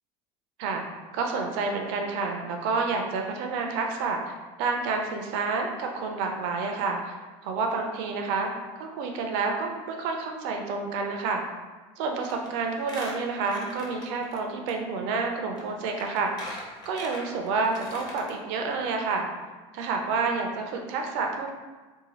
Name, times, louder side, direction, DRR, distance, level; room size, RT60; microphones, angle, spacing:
voice 1, 1.1-7.2 7.4-8.5 8.8-11.4 12.0-16.5 16.9-19.3 19.7-21.5, right 4 dB, 75° right, 3 dB, 0.5 m, -29 dB
Squeak, 12.2-12.5 12.8-14.4 14.7-14.8 15.6-15.7 16.0-18.3 18.7-18.8 19.0-19.1, left 2 dB, 30° left, 0.7 m, -41 dB
2.7 x 2.2 x 3.0 m, 1.3 s
supercardioid pair, 115°, 14 cm